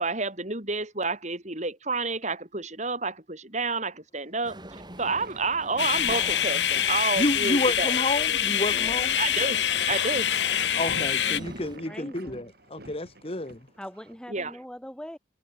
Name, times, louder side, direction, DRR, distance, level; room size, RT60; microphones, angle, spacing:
voice 1, 0.0-4.6 5.0-8.0 9.2-9.6 9.9-10.3 14.3-14.5, right 3 dB, 40° right, 8.0 m, -30 dB
sound 1, 4.4-11.8, right 1 dB, 25° right, 7.2 m, -44 dB
sound 2, 4.7-14.2, right 2 dB, 55° right, 5.1 m, -47 dB
sound 3, 5.8-11.4, left 10 dB, 70° left, 1.1 m, -25 dB
voice 2, 7.2-9.2 10.7-13.6, left 2 dB, 30° left, 1.8 m, -30 dB
voice 3, 11.9-12.5 13.8-15.2, equal, 5° left, 6.9 m, -41 dB
head